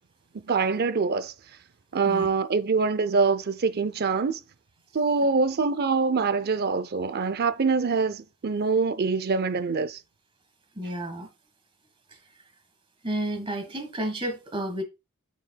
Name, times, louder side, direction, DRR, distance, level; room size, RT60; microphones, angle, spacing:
voice 1, 0.4-1.3 1.9-4.4 4.9-10.0, right 4 dB, 45° right, 0.5 m, -24 dB
voice 2, 10.7-11.3 13.0-14.8, right 1 dB, 25° right, 1.5 m, -31 dB
6.7 x 6.3 x 2.2 m
head